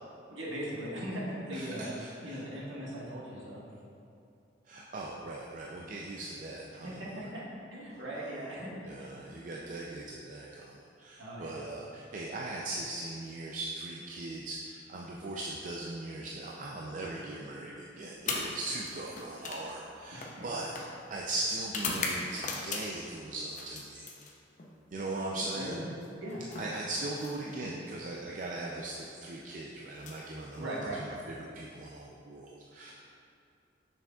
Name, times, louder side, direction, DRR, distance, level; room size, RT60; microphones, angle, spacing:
voice 1, 0.3-3.6 6.7-7.4 7.7-8.9 9.5-9.6 11.2-11.6 20.1-20.5 25.3-25.8 26.2-26.4 30.5-31.0, right 1 dB, 85° right, -6 dB, 1.5 m, -39 dB
voice 2, 1.5-2.4 4.7-7.1 8.8-20.7 21.1-24.0 24.9-25.8 26.6-32.9, right 2 dB, 45° right, -2 dB, 0.4 m, -39 dB
sound 1, 18.2-23.1 23.5-24.7 25.9-27.8 28.8-29.1 29.9-31.0, left 3 dB, 40° left, 0.6 m, -40 dB
6.7 x 6.1 x 2.3 m, 2.5 s
head